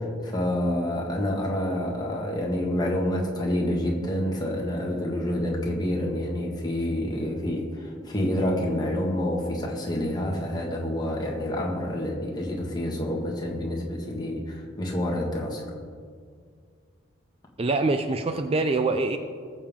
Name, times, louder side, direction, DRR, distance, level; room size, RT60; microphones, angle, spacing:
voice 1, 0.0-15.6, left 1 dB, 20° left, -2 dB, 1.7 m, -28 dB
voice 2, 17.6-19.2, right 3 dB, 30° right, 8 dB, 0.4 m, -24 dB
19.0 x 7.3 x 3.6 m, 2.1 s
head